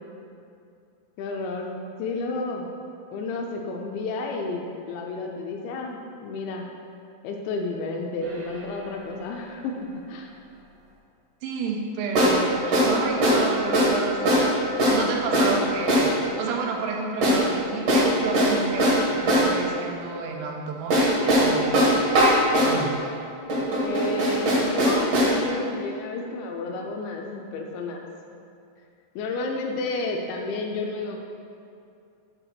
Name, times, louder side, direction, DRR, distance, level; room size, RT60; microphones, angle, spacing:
voice 1, 1.2-2.7 3.1-6.8 7.2-9.8 10.1-10.3 23.8-28.1 29.2-31.2, left 3 dB, 80° left, 2 dB, 2.7 m, -31 dB
sound 1, 8.2-8.3 12.1-12.4 12.7-12.9 13.2-13.4 13.7-14.0 14.2-14.5 14.8-15.0 15.3-15.6 15.9-16.1 17.2-17.4 17.9-19.5 20.9-22.8 23.5-25.4, equal, 70° right, 1.4 m, -20 dB
voice 2, 11.4-14.6 14.9-21.8 22.6-22.9, right 5 dB, 90° right, 0 dB, 3.3 m, -30 dB
9.1 x 3.9 x 5.9 m, 2.5 s
omnidirectional pair, 5.4 m